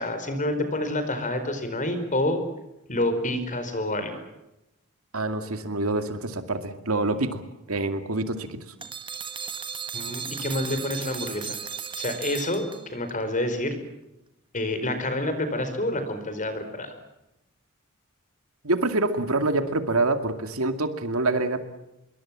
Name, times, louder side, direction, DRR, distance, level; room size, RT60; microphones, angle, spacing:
voice 1, 0.0-2.4 2.9-4.2 9.9-11.6 12.0-13.7 14.5-16.9, left 1 dB, 35° left, 9 dB, 4.7 m, -28 dB
voice 2, 5.1-7.4 7.7-8.6 18.6-21.7, right 2 dB, 75° right, 8 dB, 2.3 m, -26 dB
sound 1, 8.8-13.1, right 6 dB, 25° right, 1.6 m, -35 dB
26.0 x 23.0 x 7.5 m, 0.90 s
head